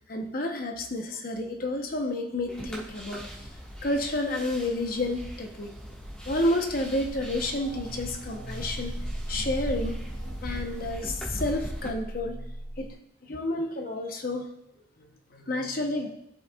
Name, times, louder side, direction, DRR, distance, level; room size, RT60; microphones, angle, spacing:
voice 1, 0.1-3.3 3.8-5.8 6.3-9.0 9.3-10.0 10.4-12.4 12.8-13.0 13.3-14.5 15.0-16.1, left 1 dB, 50° left, 4 dB, 0.9 m, -30 dB
sound 1, 2.5-11.9, equal, 5° left, 1.6 m, -39 dB
sound 2, 7.1-12.9, right 1 dB, 70° left, 1.6 m, -38 dB
14.5 x 5.4 x 2.4 m, 0.80 s
head